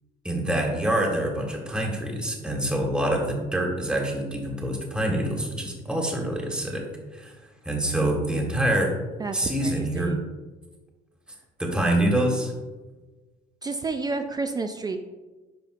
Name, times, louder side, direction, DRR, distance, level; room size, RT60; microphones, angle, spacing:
voice 1, 0.2-6.9 7.1-7.3 7.6-9.0 9.3-10.2 11.6-12.5, right 1 dB, 5° right, 0 dB, 1.5 m, -26 dB
voice 2, 9.2-10.2 13.6-15.0, right 3 dB, 25° right, 6 dB, 0.4 m, -30 dB
10.5 x 5.1 x 2.5 m, 1.2 s
cardioid pair, 110°, 17 cm